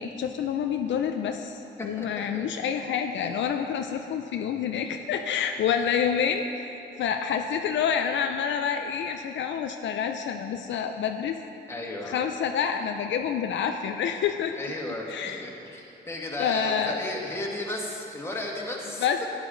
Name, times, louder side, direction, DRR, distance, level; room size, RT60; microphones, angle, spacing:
voice 1, 0.0-6.4 7.0-11.4 12.1-14.5 15.1-15.4 16.4-17.0 19.0-19.2, left 7 dB, 70° left, 5 dB, 0.6 m, -28 dB
voice 2, 1.8-2.8 3.2-3.5 11.7-12.2 14.5-15.1 15.4-19.1, left 1 dB, 15° left, -3 dB, 2.0 m, -35 dB
12.5 x 9.9 x 3.9 m, 2.9 s
cardioid pair, 90°, 20 cm